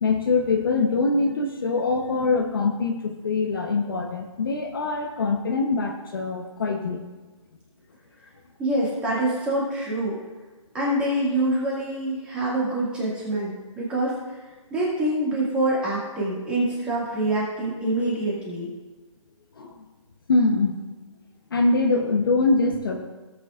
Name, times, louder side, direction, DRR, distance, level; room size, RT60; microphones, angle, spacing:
voice 1, 0.0-7.0 19.6-19.7 20.3-20.8 21.5-23.0, left 3 dB, 40° left, 2 dB, 1.0 m, -23 dB
voice 2, 8.6-10.2 10.7-14.4 14.7-18.7, right 1 dB, 5° right, -7 dB, 2.1 m, -25 dB
18.0 x 8.2 x 2.5 m, 1.2 s
hypercardioid pair, 175°, 17 cm